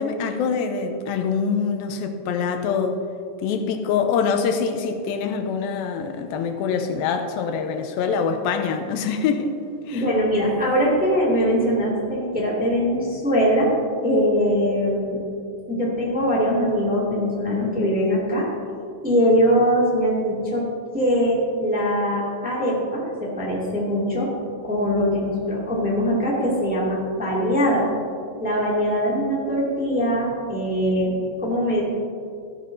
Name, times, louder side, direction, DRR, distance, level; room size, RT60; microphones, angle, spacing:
voice 1, 0.0-3.0 3.4-9.5 9.9-10.1, left 6 dB, 90° left, 7 dB, 2.5 m, -24 dB
voice 2, 9.9-13.7 14.0-15.2 15.7-18.5 19.0-20.7 20.9-24.3 24.6-27.8 28.4-31.8, equal, 5° right, -6 dB, 1.4 m, -22 dB
14.5 x 12.0 x 2.7 m, 2.4 s
omnidirectional pair, 4.2 m